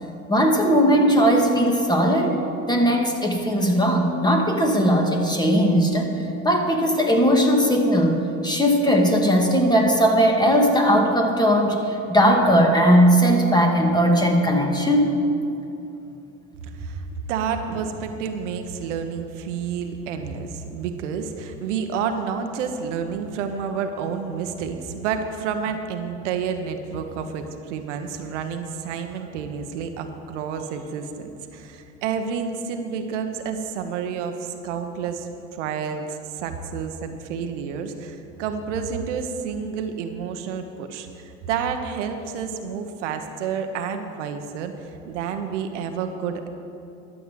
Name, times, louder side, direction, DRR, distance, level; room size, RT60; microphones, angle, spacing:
voice 1, 0.3-2.4 2.7-6.1 6.4-15.2 15.9-16.0, equal, 10° left, 1 dB, 2.2 m, -18 dB
voice 2, 16.6-46.5, right 6 dB, 85° right, 6 dB, 1.1 m, -30 dB
12.5 x 7.7 x 7.5 m, 2.8 s
hypercardioid pair, 75°, 35 cm